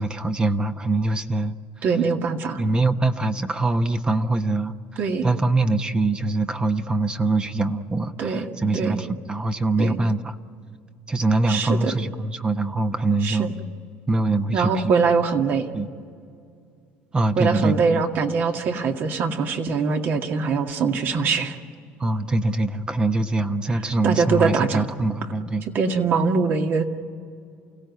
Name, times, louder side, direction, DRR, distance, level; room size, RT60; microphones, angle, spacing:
voice 1, 0.0-1.5 2.6-4.7 5.2-10.3 11.1-13.5 14.1-14.9 15.7-15.9 17.1-18.0 22.0-25.6, right 2 dB, 20° right, 8 dB, 1.1 m, -23 dB
voice 2, 1.8-2.6 5.0-5.3 8.2-8.5 8.7-9.0 9.8-10.0 11.5-11.9 13.2-13.5 14.5-15.7 17.4-21.6 24.0-24.8 25.7-26.8, right 5 dB, 55° right, 4 dB, 2.2 m, -22 dB
29.0 x 17.0 x 9.7 m, 2.3 s
cardioid pair, 105°, 4 cm